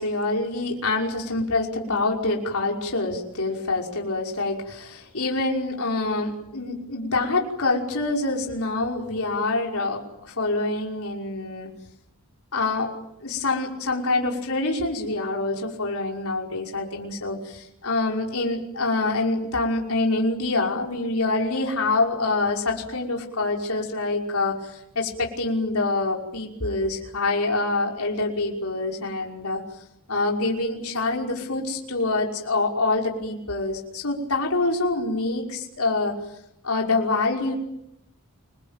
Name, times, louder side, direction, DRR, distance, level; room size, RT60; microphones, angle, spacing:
voice 1, 0.0-11.7 12.5-12.9 13.2-29.6 30.1-36.1 36.6-37.5, left 2 dB, 70° left, 0 dB, 5.6 m, -26 dB
29.0 x 22.0 x 9.2 m, 0.81 s
head